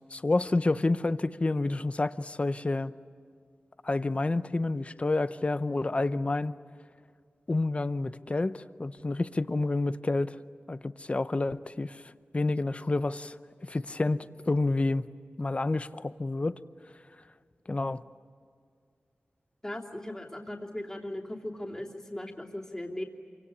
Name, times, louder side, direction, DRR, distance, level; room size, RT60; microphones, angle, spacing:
voice 1, 0.1-2.9 3.8-6.6 7.5-10.4 10.7-12.0 12.3-13.3 13.6-15.1 15.4-16.6 17.7-18.0, left 2 dB, 30° left, 13 dB, 0.7 m, -29 dB
voice 2, 19.6-23.0, left 1 dB, 15° left, -1 dB, 2.9 m, -38 dB
28.0 x 25.0 x 8.5 m, 2.1 s
wide cardioid pair, 105°, 4 cm